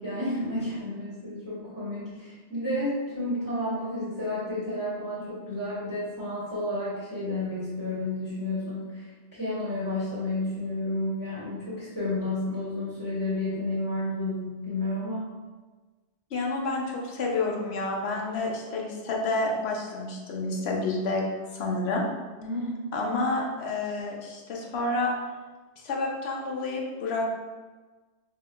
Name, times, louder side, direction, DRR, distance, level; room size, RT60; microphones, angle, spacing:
voice 1, 0.0-15.3 22.4-22.7, left 1 dB, 15° left, -12 dB, 1.5 m, -31 dB
voice 2, 16.3-21.2 21.5-22.1 22.9-25.1 25.8-27.3, left 2 dB, 70° left, -1 dB, 0.9 m, -29 dB
5.0 x 2.7 x 2.2 m, 1.3 s
omnidirectional pair, 1.2 m